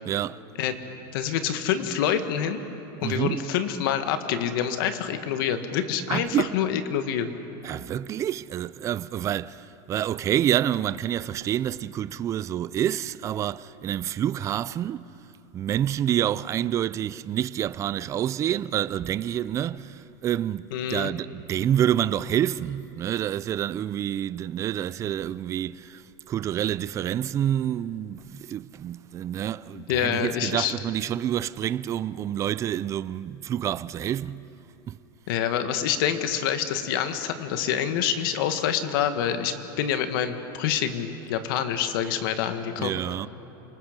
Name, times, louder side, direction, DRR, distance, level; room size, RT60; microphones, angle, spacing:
voice 1, 0.1-0.4 3.0-3.4 6.1-6.5 7.6-15.1 15.5-20.6 20.9-34.4 34.9-35.0 42.8-43.3, right 11 dB, 25° right, 0.4 m, -28 dB
voice 2, 1.1-2.6 3.0-7.3 20.7-21.1 29.7-30.7 35.3-43.0, left 9 dB, 70° left, 1.5 m, -27 dB
28.0 x 20.0 x 5.2 m
supercardioid pair, 140°, 12 cm